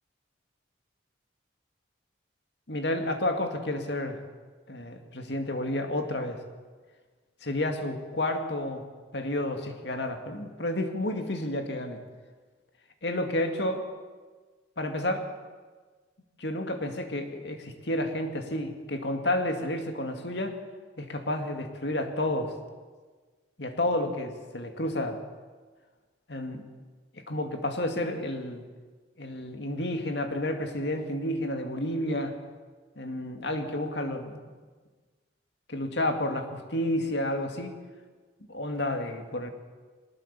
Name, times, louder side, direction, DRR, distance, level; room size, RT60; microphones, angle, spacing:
voice 1, 2.7-4.2 4.7-6.4 7.4-8.9 9.1-12.0 13.0-13.9 14.8-15.3 16.4-20.6 21.0-22.5 23.6-25.2 26.3-26.7 27.1-28.6 29.2-32.4 33.0-34.5 35.7-37.8 38.5-39.5, left 1 dB, 65° left, 5 dB, 2.3 m, -30 dB
22.0 x 19.5 x 6.9 m, 1.4 s
head